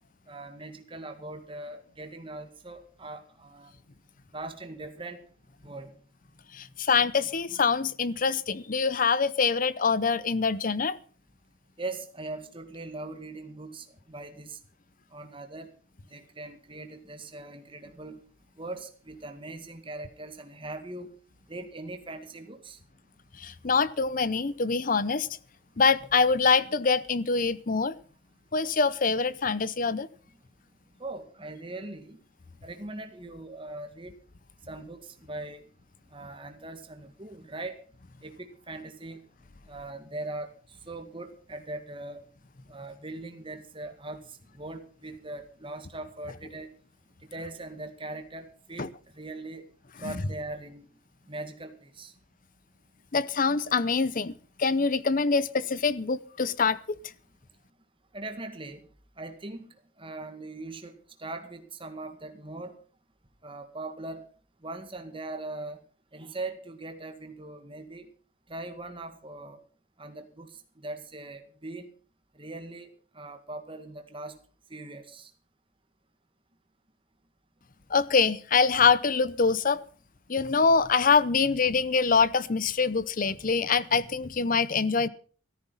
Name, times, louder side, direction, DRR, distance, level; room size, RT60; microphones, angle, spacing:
voice 1, 0.3-3.7 4.3-5.2 5.6-6.0 11.8-14.6 15.1-15.7 16.1-18.2 18.6-21.1 21.5-22.8 31.0-32.2 32.6-34.2 34.7-35.7 36.1-37.8 38.2-39.2 39.7-42.2 42.7-46.7 47.2-48.9 49.1-49.6 50.0-50.9 51.3-52.1 58.1-58.8 59.2-62.8 63.4-64.3 64.6-65.8 66.1-68.1 68.5-69.6 70.0-71.9 72.4-72.9 73.1-74.4 74.7-75.3, right 2 dB, 25° right, 1.9 m, -40 dB
voice 2, 6.5-11.0 23.4-25.3 25.8-28.0 28.5-30.1 48.8-48.9 50.0-50.2 53.1-54.3 54.6-57.0 77.9-79.8 80.3-85.1, left 5 dB, 40° left, 0.7 m, -24 dB
14.0 x 14.0 x 5.6 m
head